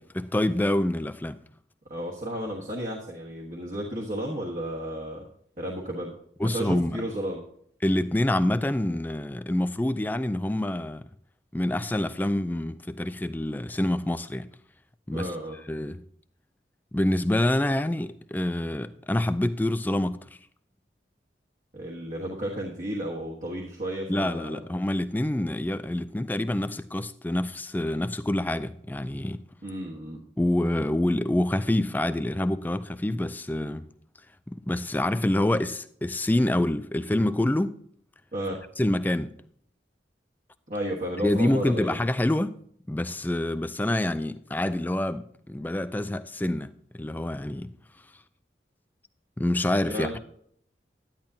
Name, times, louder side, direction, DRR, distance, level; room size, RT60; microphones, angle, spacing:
voice 1, 0.2-1.4 6.4-7.0 7.8-11.0 11.5-14.5 15.1-15.3 15.7-16.0 16.9-20.2 24.1-29.4 30.4-33.9 34.5-37.8 38.8-39.3 41.2-42.6 42.9-47.7 49.4-50.2, left 1 dB, 10° left, 0.3 m, -26 dB
voice 2, 1.9-5.2 5.6-6.1 6.4-7.4 15.1-15.6 21.7-24.5 29.6-30.2 38.3-38.6 40.7-41.9 49.9-50.2, right 1 dB, 45° right, 1.3 m, -33 dB
10.5 x 10.5 x 2.8 m
head